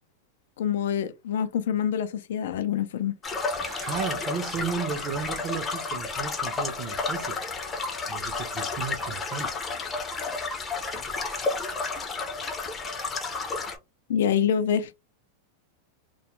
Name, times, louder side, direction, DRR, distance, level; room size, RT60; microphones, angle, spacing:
voice 1, 0.6-3.2 14.1-15.0, left 8 dB, 80° left, 0.3 m, -26 dB
sound 1, 3.2-13.8, left 4 dB, 15° left, 0.5 m, -31 dB
voice 2, 3.6-7.4 8.1-9.6, right 6 dB, 35° right, 0.5 m, -34 dB
2.2 x 2.0 x 2.9 m
supercardioid pair, 150°, 0 cm